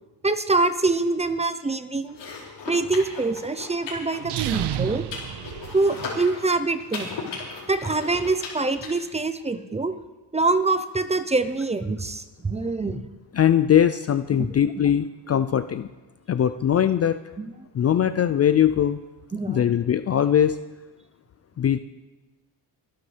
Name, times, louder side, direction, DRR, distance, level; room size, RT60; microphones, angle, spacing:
voice 1, 0.2-2.2 2.7-5.1 5.7-7.1 7.7-9.9 10.3-13.0 14.4-14.5 17.4-17.5 19.3-19.6, right 3 dB, 15° right, 11 dB, 0.6 m, -25 dB
sound 1, 2.1-8.9, left 4 dB, 75° left, 4.6 m, -37 dB
sound 2, 4.2-6.3, right 12 dB, 65° right, 0.6 m, -30 dB
voice 2, 13.3-15.9 16.3-17.2 17.7-19.0 19.5-20.6 21.6-21.8, left 9 dB, 35° left, 11 dB, 0.4 m, -21 dB
25.0 x 11.5 x 3.4 m, 1.1 s
cardioid pair, 130°, 43 cm